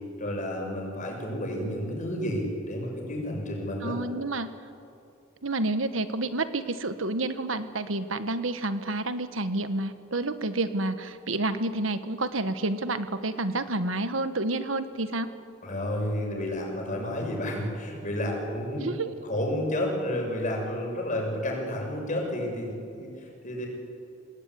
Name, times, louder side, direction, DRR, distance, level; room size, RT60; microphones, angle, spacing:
voice 1, 0.2-4.0 15.6-19.0 19.2-23.7, left 1 dB, 40° left, 1 dB, 6.8 m, -31 dB
voice 2, 3.8-4.5 5.4-15.3 18.8-19.1, right 2 dB, 85° right, 10 dB, 1.5 m, -29 dB
26.0 x 19.5 x 9.8 m, 2.7 s
head